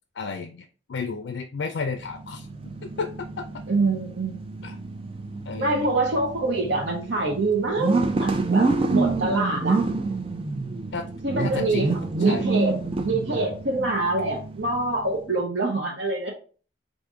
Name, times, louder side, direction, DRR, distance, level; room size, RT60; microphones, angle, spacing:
voice 1, 0.2-2.5 3.0-3.1 3.4-3.5 4.6-4.8 5.5-5.9 10.9-11.0 11.3-11.8 12.2-12.5, left 4 dB, 70° left, 7 dB, 0.4 m, -32 dB
sound 1, 1.9-15.3, right 3 dB, 30° right, 0.4 m, -28 dB
voice 2, 3.7-4.4 5.6-9.8 11.2-12.8 13.0-16.3, right 2 dB, 70° right, -1 dB, 0.8 m, -25 dB
5.0 x 2.6 x 3.6 m, 0.39 s
head